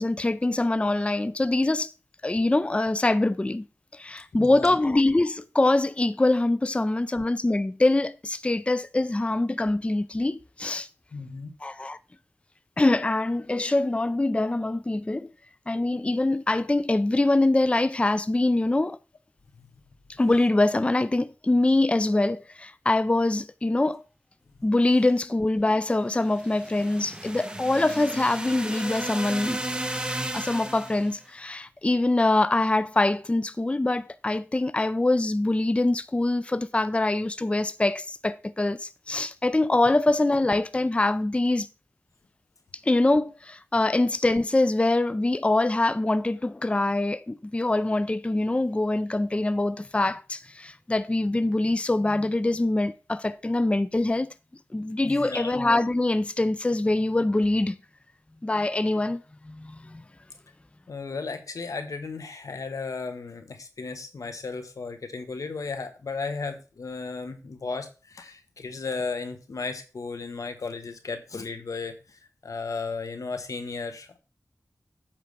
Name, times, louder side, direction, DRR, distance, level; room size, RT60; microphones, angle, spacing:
voice 1, 0.0-1.9 2.2-3.7 3.9-10.9 11.6-12.0 12.8-15.3 15.7-19.0 20.2-24.0 24.6-29.6 30.3-41.7 42.8-54.3 54.7-57.8 58.4-60.0, left 2 dB, 20° left, 0.4 m, -24 dB
voice 2, 4.3-4.8 11.1-11.5 55.1-55.5 60.9-74.2, left 4 dB, 85° left, 1.2 m, -35 dB
sound 1, 26.2-31.1, right 1 dB, 15° right, 1.1 m, -34 dB
8.8 x 3.4 x 6.7 m
wide cardioid pair, 55°, 6 cm